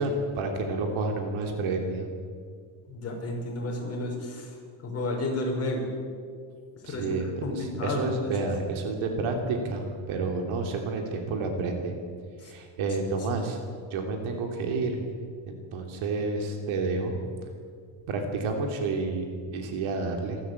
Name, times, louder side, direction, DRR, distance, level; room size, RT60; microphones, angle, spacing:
voice 1, 0.0-2.1 6.9-11.9 12.4-13.6 13.9-15.0 15.5-17.1 18.1-20.4, right 3 dB, 75° right, 3 dB, 3.2 m, -30 dB
voice 2, 2.9-4.6 4.8-6.0 6.8-8.5 12.4-12.5 13.2-13.3, left 2 dB, 30° left, -1 dB, 5.9 m, -32 dB
27.0 x 13.0 x 8.5 m, 2.1 s
cardioid pair, 150°, 49 cm